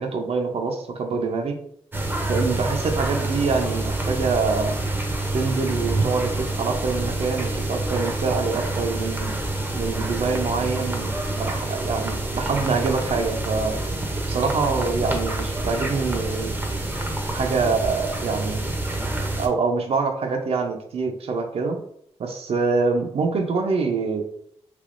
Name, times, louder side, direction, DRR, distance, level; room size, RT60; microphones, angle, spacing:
voice 1, 0.0-1.6 2.3-4.8 5.3-9.3 9.7-11.1 11.4-13.8 14.3-16.5 17.3-18.7 19.4-21.8 22.2-24.2, right 4 dB, 65° right, 4 dB, 0.6 m, -25 dB
sound 1, 1.9-19.5, right 2 dB, 15° right, 0.6 m, -27 dB
3.4 x 2.9 x 2.5 m, 0.68 s
wide cardioid pair, 110°, 11 cm